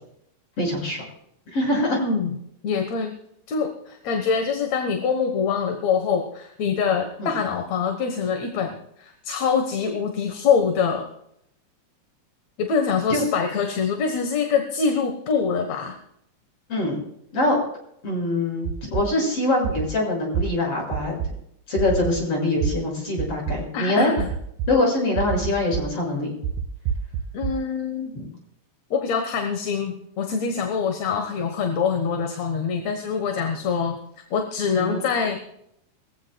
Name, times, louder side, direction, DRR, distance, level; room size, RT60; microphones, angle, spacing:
voice 1, 0.6-1.0 1.5-2.0 7.2-7.3 13.1-13.2 16.7-17.0 17.3-17.6 18.0-21.2 21.7-24.1 24.7-26.3 34.7-35.0, left 2 dB, 45° left, -1 dB, 7.6 m, -23 dB
voice 2, 1.9-2.4 2.6-3.2 3.5-11.1 12.6-16.0 23.7-24.3 27.3-28.2 28.9-34.0 34.3-35.4, left 6 dB, 60° left, 4 dB, 2.5 m, -24 dB
sound 1, 18.7-19.0 19.6-19.9 20.3-20.5 20.9-21.3 21.8-22.1 22.6-22.7 23.2-23.6 24.2-24.7 25.2-25.8 26.4-27.5, right 8 dB, 80° right, 2.4 m, -26 dB
22.5 x 15.5 x 2.4 m, 0.74 s
omnidirectional pair, 3.6 m